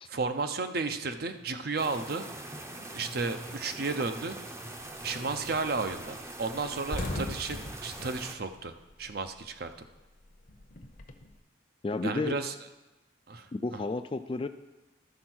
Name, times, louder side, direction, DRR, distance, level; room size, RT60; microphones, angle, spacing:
voice 1, 0.0-2.3 2.9-4.4 5.0-8.7 9.0-9.9 12.0-12.5 13.3-13.5, right 3 dB, 55° right, 8 dB, 0.7 m, -33 dB
sound 1, 1.8-8.3, right 1 dB, 15° right, 0.6 m, -42 dB
sound 2, 4.8-5.1 5.5-5.7 5.9-6.1 6.4-9.4 9.7-11.3, left 1 dB, 45° left, 0.7 m, -39 dB
voice 2, 11.8-12.3 13.5-14.5, left 3 dB, 30° left, 9 dB, 0.3 m, -32 dB
12.5 x 4.5 x 6.1 m, 1.1 s
head